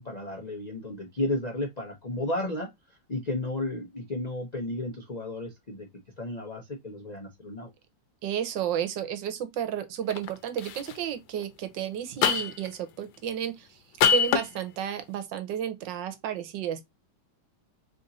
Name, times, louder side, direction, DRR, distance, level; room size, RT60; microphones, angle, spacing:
voice 1, 0.0-2.7 3.1-5.9 6.2-7.7, left 2 dB, 65° left, 0.4 m, -33 dB
voice 2, 8.2-13.8 14.1-16.9, right 9 dB, 80° right, 1.4 m, -32 dB
sound 1, 10.1-10.3 10.6-10.9 12.2-12.7 14.0-14.5, left 8 dB, 90° left, 1.4 m, -23 dB
3.5 x 2.5 x 3.9 m
omnidirectional pair, 2.0 m